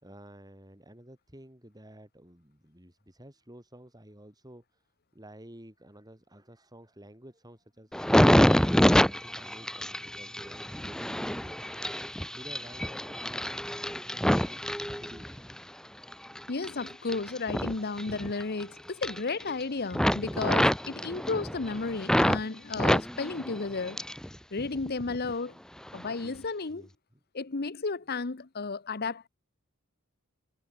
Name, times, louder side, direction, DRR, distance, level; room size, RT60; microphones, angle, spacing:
voice 1, 0.0-4.6 5.1-7.9 8.4-11.6 12.3-14.6 14.9-15.4 21.1-21.2 26.2-26.9, right 1 dB, 15° right, 4.7 m, -51 dB
sound 1, 7.9-15.6 16.0-18.6 18.9-19.6 19.9-22.4 22.7-24.3 24.6-25.3 25.9-26.1, equal, 5° left, 0.7 m, -27 dB
voice 2, 16.5-24.0 24.5-25.6 25.9-26.9 27.3-29.3, left 3 dB, 45° left, 0.9 m, -33 dB
head